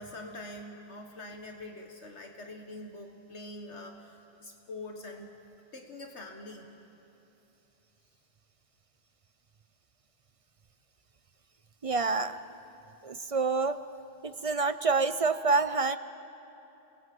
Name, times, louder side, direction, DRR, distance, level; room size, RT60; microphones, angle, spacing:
voice 1, 0.0-5.3 5.7-6.7, left 2 dB, 65° left, 3 dB, 1.8 m, -44 dB
voice 2, 11.8-12.4 13.0-13.8 14.2-16.0, right 4 dB, 45° right, 12 dB, 0.4 m, -27 dB
27.5 x 19.0 x 7.8 m, 3.0 s
omnidirectional pair, 1.3 m